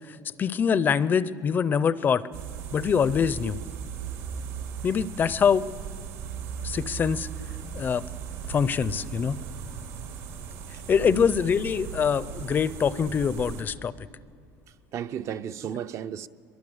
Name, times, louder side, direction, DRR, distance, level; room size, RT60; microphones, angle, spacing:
voice 1, 0.4-2.2 2.7-3.6 4.8-5.7 6.6-7.3 7.7-8.0 8.5-9.4 10.9-13.9, left 7 dB, 25° left, 0.5 m, -24 dB
sound 1, 2.3-13.6, right 7 dB, 75° right, 4.1 m, -37 dB
voice 2, 14.9-16.3, right 9 dB, 40° right, 0.6 m, -34 dB
23.0 x 23.0 x 8.0 m
cardioid pair, 140°, 7 cm